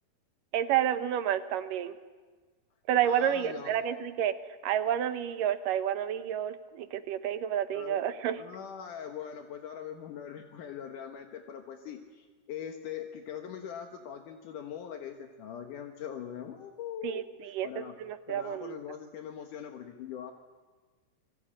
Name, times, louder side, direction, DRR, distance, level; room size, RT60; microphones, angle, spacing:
voice 1, 0.5-1.9 2.9-4.3 4.6-8.4 17.0-17.7 18.0-18.8, right 10 dB, 85° right, 10 dB, 2.8 m, -30 dB
voice 2, 3.0-3.7 7.7-8.0 8.4-18.0 18.3-20.3, left 8 dB, 75° left, 4 dB, 2.8 m, -42 dB
27.5 x 22.0 x 8.8 m, 1.4 s
omnidirectional pair, 3.8 m